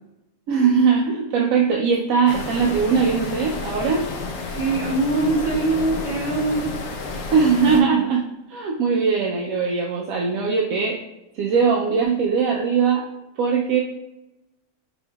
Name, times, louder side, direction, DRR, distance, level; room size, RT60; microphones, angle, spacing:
voice 1, 0.5-4.1 7.3-11.0 11.3-13.0 13.4-13.8, right 5 dB, 90° right, -2 dB, 1.0 m, -20 dB
sound 1, 2.3-7.8, left 3 dB, 75° left, 1.1 m, -31 dB
voice 2, 4.6-6.7, right 2 dB, 70° right, -5 dB, 2.0 m, -22 dB
4.4 x 4.3 x 2.2 m, 0.94 s
omnidirectional pair, 1.4 m